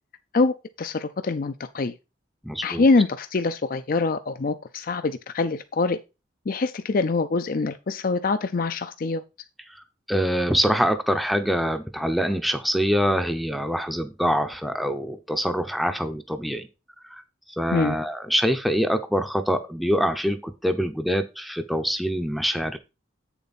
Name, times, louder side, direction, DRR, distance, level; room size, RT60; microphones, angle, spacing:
voice 1, 0.3-1.9 2.6-6.0 6.5-9.2 17.7-18.0, left 3 dB, 50° left, 11 dB, 0.5 m, -24 dB
voice 2, 2.4-2.8 9.7-16.7 17.0-17.2 17.5-22.8, equal, ahead, 7 dB, 0.6 m, -25 dB
8.6 x 7.0 x 4.1 m, 0.28 s
head